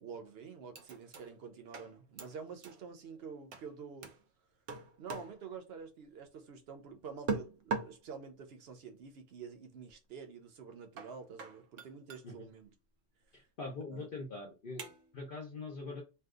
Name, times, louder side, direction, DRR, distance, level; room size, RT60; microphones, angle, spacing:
voice 1, 0.0-4.2 5.0-12.7 13.8-14.1, right 5 dB, 60° right, 0.8 m, -48 dB
sound 1, 0.8-1.4 1.7-2.8 3.5-3.7 4.0-4.2 4.7-5.5 7.3-8.1 9.9-10.0 11.0-12.3 14.8-15.3, right 4 dB, 85° right, 1.0 m, -41 dB
voice 2, 13.3-16.0, left 3 dB, 50° left, 0.8 m, -43 dB
2.7 x 2.3 x 3.6 m
omnidirectional pair, 1.3 m